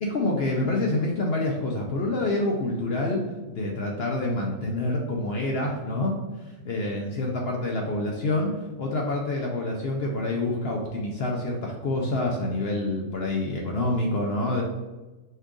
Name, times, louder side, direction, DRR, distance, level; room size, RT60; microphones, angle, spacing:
voice 1, 0.0-3.2 3.5-14.6, left 2 dB, 65° left, 0 dB, 0.6 m, -27 dB
5.3 x 2.4 x 3.7 m, 1.1 s
omnidirectional pair, 1.6 m